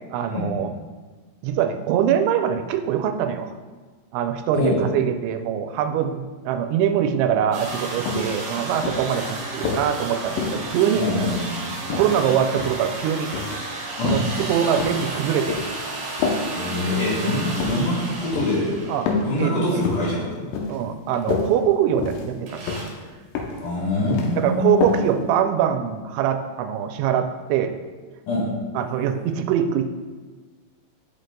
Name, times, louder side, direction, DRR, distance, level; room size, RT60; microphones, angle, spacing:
voice 1, 0.1-0.7 1.4-3.5 4.1-11.0 11.9-13.3 14.0-15.6 18.9-19.0 19.4-19.8 20.7-22.8 24.4-27.8 28.8-29.9, right 9 dB, 85° right, 7 dB, 2.8 m, -23 dB
sound 1, 7.5-19.4 22.5-22.8, right 2 dB, 60° right, 2.0 m, -33 dB
sound 2, 8.1-8.3 8.8-9.9 10.4-11.5 11.9-12.8 13.3-13.6 14.0-14.3 14.8-15.8 16.2-16.4 16.9-17.1 17.5-17.8 18.3-18.6 19.1-19.3 19.7-20.1 20.5-20.8 21.1-21.5 22.0-22.3 22.7-22.9 23.3-23.6 23.9-24.3 24.8-25.0 25.4-25.5, left 4 dB, 75° left, 2.7 m, -27 dB
voice 2, 10.9-11.6 14.0-14.2 16.5-18.7 19.2-20.3 23.6-24.9 28.3-28.5, left 1 dB, 55° left, -6 dB, 2.9 m, -24 dB
10.0 x 6.3 x 2.2 m, 1.4 s
omnidirectional pair, 5.1 m